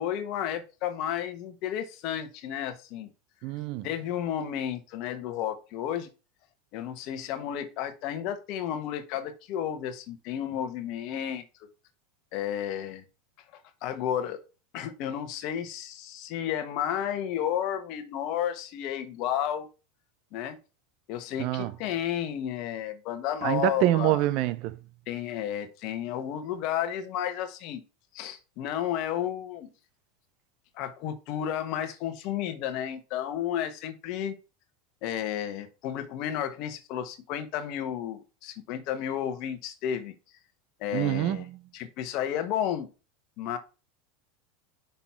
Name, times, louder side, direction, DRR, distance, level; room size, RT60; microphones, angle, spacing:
voice 1, 0.0-3.1 3.8-6.1 6.7-11.7 12.3-13.0 13.8-14.4 14.7-19.7 20.3-20.6 21.1-24.3 25.1-27.8 28.1-29.7 30.7-34.4 35.0-40.1 40.8-41.5 41.7-42.9 43.4-43.6, left 10 dB, 55° left, 1.3 m, -32 dB
voice 2, 3.4-3.9 21.4-21.7 23.4-24.8 40.9-41.6, right 15 dB, 55° right, 0.6 m, -26 dB
5.9 x 4.0 x 5.8 m
hypercardioid pair, 105°, 0 cm